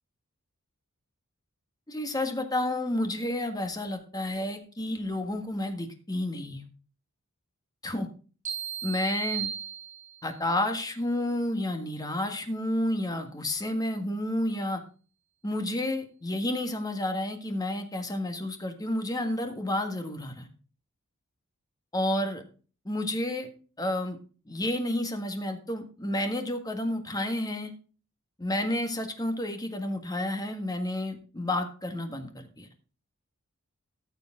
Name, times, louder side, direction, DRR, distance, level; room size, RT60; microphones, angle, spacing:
voice 1, 1.9-6.7 7.8-8.1 8.8-9.5 10.2-14.8 15.4-20.5 21.9-22.4 22.8-23.5 23.8-24.2 24.5-27.7 28.4-32.7, left 1 dB, 15° left, 6 dB, 1.7 m, -30 dB
sound 1, 8.5-10.4, right 9 dB, 35° right, 4.3 m, -35 dB
14.0 x 6.9 x 3.8 m, 0.37 s
head